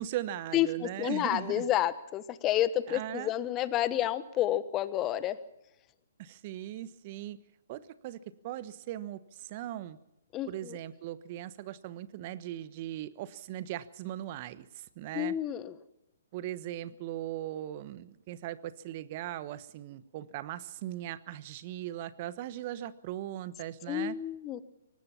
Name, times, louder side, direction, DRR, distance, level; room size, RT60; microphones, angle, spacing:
voice 1, 0.0-1.7 2.9-3.3 6.2-7.4 7.7-10.0 10.5-15.3 16.3-24.2, right 13 dB, 40° right, 15 dB, 1.1 m, -39 dB
voice 2, 1.0-5.4 10.3-10.8 15.1-15.7 23.9-24.6, left 13 dB, 25° left, 14 dB, 1.2 m, -30 dB
24.0 x 19.5 x 5.8 m, 0.85 s
figure-of-eight pair, 130°, 0 cm